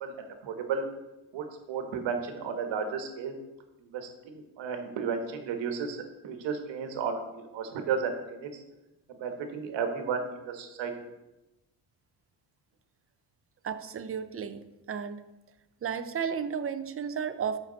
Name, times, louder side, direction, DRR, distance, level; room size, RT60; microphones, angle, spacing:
voice 1, 0.0-0.8 1.3-3.3 3.9-8.5 9.1-10.9, right 6 dB, 75° right, 6 dB, 1.4 m, -33 dB
voice 2, 13.6-15.2 15.8-17.6, right 7 dB, 30° right, 10 dB, 0.7 m, -33 dB
13.0 x 6.0 x 4.0 m, 1.0 s
cardioid pair, 130°, 45 cm